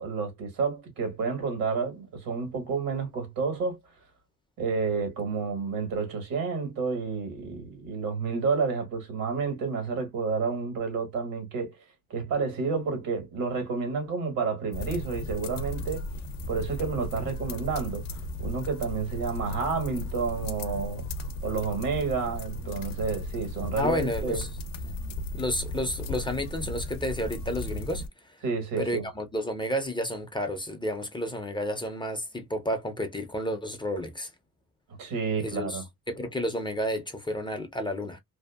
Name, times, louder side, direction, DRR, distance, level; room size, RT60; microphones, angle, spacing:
voice 1, 0.0-3.8 4.6-11.8 12.1-16.0 16.5-21.0 21.4-24.4 28.4-29.1 35.0-35.8, right 5 dB, 90° right, 1.4 m, -30 dB
sound 1, 14.7-28.1, left 1 dB, 80° left, 0.6 m, -36 dB
voice 2, 23.8-24.5 25.3-28.0 28.8-34.3 35.4-35.8 36.1-38.2, left 1 dB, 15° left, 0.4 m, -31 dB
2.7 x 2.4 x 2.2 m
cardioid pair, 120°, 33 cm